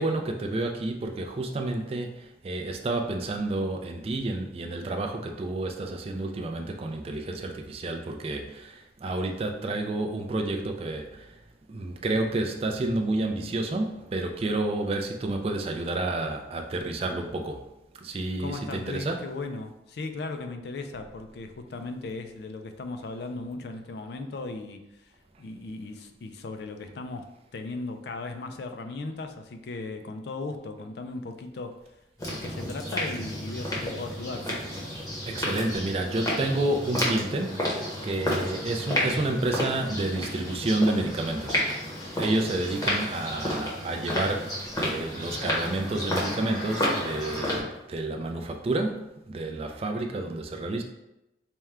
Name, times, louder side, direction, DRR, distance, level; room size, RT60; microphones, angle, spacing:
voice 1, 0.0-11.4 11.7-17.6 18.0-19.2 35.3-41.7 42.2-50.8, right 2 dB, 30° right, 3 dB, 0.3 m, -30 dB
voice 2, 18.4-25.1 25.4-31.8 32.3-34.5, left 3 dB, 60° left, 7 dB, 0.4 m, -37 dB
sound 1, 32.2-47.6, left 1 dB, 20° left, 0.8 m, -31 dB
4.4 x 2.2 x 3.5 m, 0.92 s
head